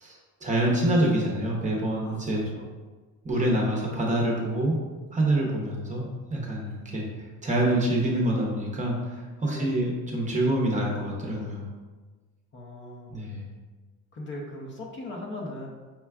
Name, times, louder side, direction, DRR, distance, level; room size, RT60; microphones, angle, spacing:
voice 1, 0.0-2.4 3.2-4.7 5.1-7.0 7.4-11.6 13.1-13.4, right 1 dB, 25° right, -2 dB, 0.7 m, -26 dB
voice 2, 9.4-9.7 12.5-13.1 14.1-15.7, left 1 dB, 35° left, -1 dB, 0.6 m, -38 dB
5.6 x 2.3 x 2.3 m, 1.3 s
cardioid pair, 120°, 33 cm